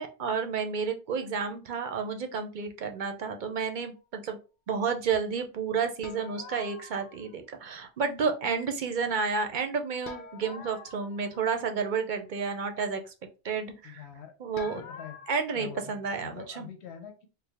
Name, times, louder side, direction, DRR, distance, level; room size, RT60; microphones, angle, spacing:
voice 1, 0.0-4.4 4.7-13.0 13.4-14.0 14.4-14.8 15.3-16.7, right 5 dB, 55° right, 7 dB, 0.6 m, -31 dB
sound 1, 6.0-7.4 10.1-12.0 14.6-15.3, left 5 dB, 55° left, 0.7 m, -46 dB
voice 2, 13.8-15.2 15.5-15.9 16.2-17.3, left 8 dB, 80° left, 6 dB, 1.1 m, -45 dB
4.5 x 2.0 x 3.4 m, 0.32 s
omnidirectional pair, 1.1 m